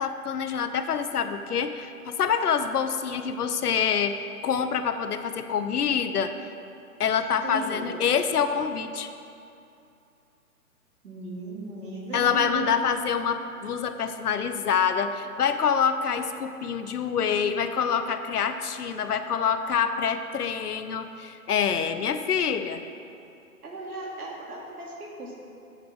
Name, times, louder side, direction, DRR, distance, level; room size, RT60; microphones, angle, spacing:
voice 1, 0.0-6.4 7.0-9.1 12.1-22.8, left 7 dB, 80° left, 9 dB, 0.8 m, -26 dB
voice 2, 7.4-8.0 11.0-13.0 23.6-25.4, right 1 dB, 75° right, -1 dB, 2.4 m, -36 dB
8.0 x 7.8 x 6.0 m, 2.6 s
hypercardioid pair, 165°, 45 cm